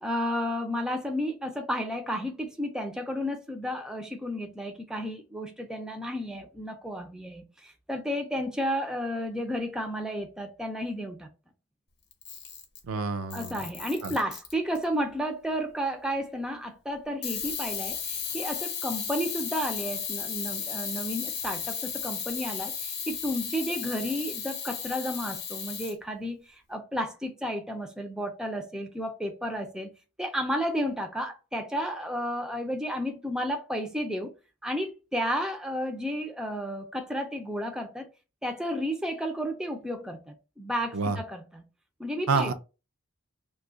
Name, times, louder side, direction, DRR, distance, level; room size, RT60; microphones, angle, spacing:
voice 1, 0.0-11.3 13.3-29.9 30.2-34.3 34.6-38.1 38.4-41.6 42.0-42.5, equal, 5° right, 0.4 m, -32 dB
Camera, 12.1-12.9 13.3-14.8 17.2-25.9, left 7 dB, 50° left, 0.7 m, -35 dB
voice 2, 12.8-13.6 14.0-14.2 40.9-41.2 42.3-42.5, right 4 dB, 85° right, 0.5 m, -28 dB
2.7 x 2.3 x 3.7 m
head